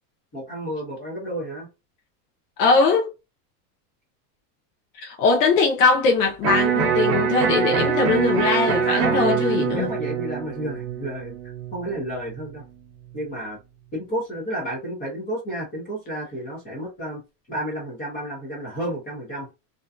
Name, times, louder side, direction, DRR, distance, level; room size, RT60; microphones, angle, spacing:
voice 1, 0.3-1.7 8.8-9.4 9.7-11.4 11.7-12.6 13.1-13.6 13.9-17.2 17.5-19.5, equal, 20° left, 0.7 m, -31 dB
voice 2, 2.6-3.1 4.9-9.9, left 4 dB, 75° left, 0.8 m, -21 dB
Electric guitar, 6.4-12.5, right 8 dB, 40° right, 0.5 m, -24 dB
2.6 x 2.2 x 2.4 m
supercardioid pair, 165°, 49 cm